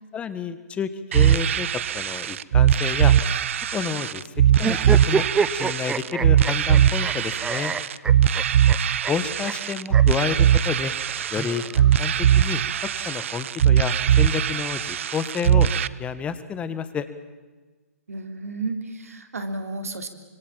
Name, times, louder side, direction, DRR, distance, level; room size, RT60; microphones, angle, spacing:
voice 1, 0.1-3.1 3.6-4.2 4.6-5.3 5.5-7.7 9.1-10.9 11.3-17.1, left 7 dB, 15° left, 12 dB, 1.6 m, -30 dB
sound 1, 1.1-15.9, right 10 dB, 55° right, 0.9 m, -20 dB
sound 2, 4.6-7.1 7.4-8.8 9.0-9.1 9.4-9.5 9.9-10.0 11.1-12.1, right 5 dB, 10° right, 0.9 m, -27 dB
voice 2, 18.1-20.1, right 3 dB, 75° right, 7 dB, 3.2 m, -32 dB
26.5 x 25.5 x 7.5 m, 1.3 s
figure-of-eight pair, 130°, 8 cm